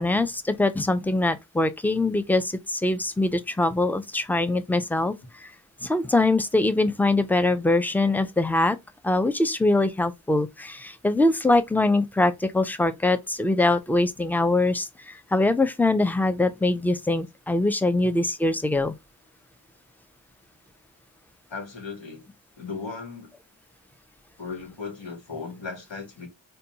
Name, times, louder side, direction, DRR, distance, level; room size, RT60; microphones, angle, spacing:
voice 1, 0.0-5.5 5.8-8.8 9.0-18.9, left 2 dB, 5° left, 0.4 m, -23 dB
voice 2, 21.5-22.3 22.6-23.3 24.4-26.3, left 4 dB, 80° left, 1.2 m, -36 dB
4.0 x 2.2 x 2.7 m
wide cardioid pair, 65°, 44 cm